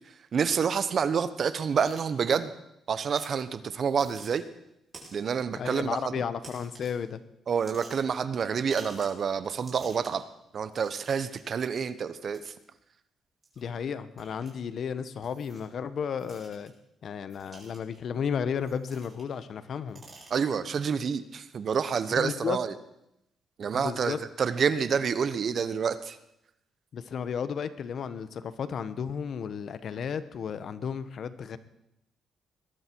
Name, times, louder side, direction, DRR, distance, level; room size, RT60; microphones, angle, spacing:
voice 1, 0.3-2.5 2.9-4.4 5.1-6.1 7.5-10.2 10.5-12.5 20.3-22.7 23.6-26.2, right 6 dB, 50° right, 13 dB, 1.1 m, -28 dB
sound 1, 1.7-2.0 3.1-3.3 3.9-4.3 4.9-5.3 6.4-7.0 7.5-8.2 8.7-9.2 9.5-10.2 10.7-11.4 12.3-12.5 13.4-13.6 14.2-14.5 15.2-15.7 16.2-16.7 17.3-18.0 18.6-19.3 19.7-20.6, right 3 dB, 35° right, 6.6 m, -50 dB
voice 2, 5.6-7.2 13.6-16.7 17.0-20.0 22.2-22.6 23.7-24.2 26.9-31.6, left 7 dB, 60° left, 13 dB, 1.1 m, -33 dB
21.0 x 12.0 x 4.7 m, 0.83 s
cardioid pair, 90°, 0 cm